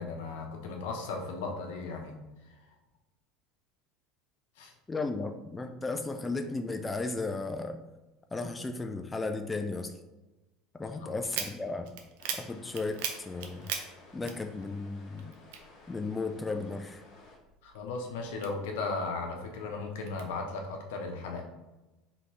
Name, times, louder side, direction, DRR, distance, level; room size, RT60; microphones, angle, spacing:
voice 1, 0.0-2.2 2.4-2.7 4.6-4.7 11.0-11.1 17.6-21.4, left 3 dB, 85° left, 2 dB, 0.9 m, -36 dB
voice 2, 4.9-7.8 8.3-10.0 10.7-11.9 12.3-13.7 14.1-15.3 15.9-17.0, left 3 dB, 15° left, 5 dB, 0.4 m, -35 dB
sound 1, 11.2-14.9 15.2-16.5 16.9-19.0 19.5-20.2, right 7 dB, 80° right, 0.6 m, -39 dB
sound 2, 12.2-17.4, left 3 dB, 60° left, 1.3 m, -55 dB
4.2 x 3.5 x 3.1 m, 1.1 s
supercardioid pair, 105°, 0 cm